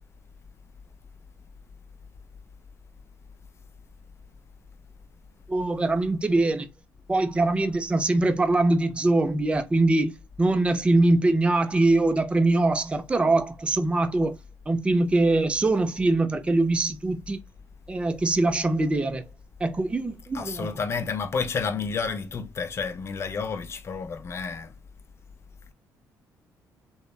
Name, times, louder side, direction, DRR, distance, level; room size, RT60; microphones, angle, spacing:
voice 1, 5.5-6.7 7.1-10.1 10.4-14.4 14.7-17.4 17.9-19.2 19.6-20.7, right 2 dB, 15° right, 0.4 m, -23 dB
voice 2, 20.3-24.7, left 5 dB, 40° left, 0.5 m, -30 dB
3.2 x 2.0 x 2.2 m
cardioid pair, 90°, 7 cm